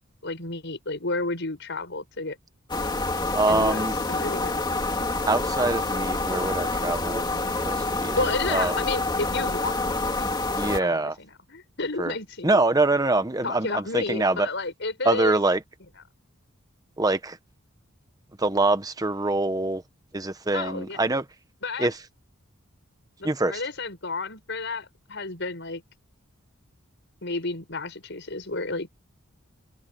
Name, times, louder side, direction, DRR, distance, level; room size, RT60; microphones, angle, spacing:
voice 1, 0.2-2.4 3.5-4.6 8.1-9.7 10.8-12.6 13.4-15.4 20.5-21.0 21.6-21.9 23.2-25.8 27.2-29.0, left 3 dB, 55° left, 6.7 m, -31 dB
sound 1, 2.7-10.8, left 2 dB, 20° left, 2.7 m, -27 dB
voice 2, 3.3-4.0 5.3-8.2 8.5-8.7 10.5-11.1 12.0-12.1 12.4-14.5 15.0-15.6 17.0-17.4 18.4-19.8 20.1-21.3 21.8-22.0 23.2-23.6, right 2 dB, 15° right, 0.9 m, -24 dB
head